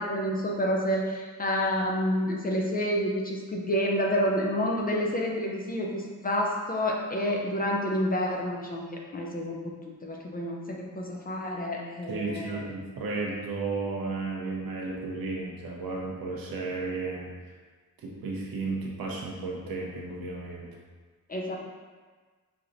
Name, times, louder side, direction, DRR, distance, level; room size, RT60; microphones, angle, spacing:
voice 1, 0.0-9.6 10.0-12.6 21.3-21.6, equal, 25° left, -1 dB, 0.4 m, -29 dB
voice 2, 12.1-17.3 18.0-20.7, right 3 dB, 80° right, -2 dB, 0.9 m, -33 dB
5.7 x 2.8 x 2.5 m, 1.4 s
wide cardioid pair, 170°, 35 cm